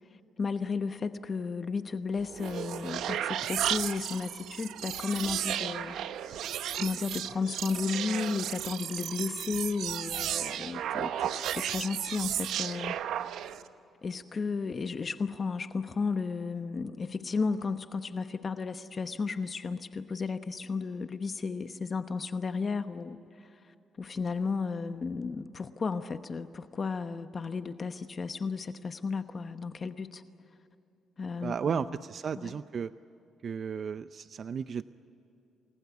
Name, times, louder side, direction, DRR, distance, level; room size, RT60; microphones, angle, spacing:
voice 1, 0.4-6.0 6.7-13.0 14.0-30.2 31.2-31.9 32.4-32.6, left 4 dB, 40° left, 9 dB, 1.0 m, -34 dB
sound 1, 2.2-13.7, right 10 dB, 80° right, 0.9 m, -34 dB
voice 2, 31.4-32.9 33.4-34.8, right 6 dB, 50° right, 13 dB, 0.5 m, -34 dB
29.0 x 21.0 x 8.3 m, 2.8 s
cardioid pair, 90°, 0 cm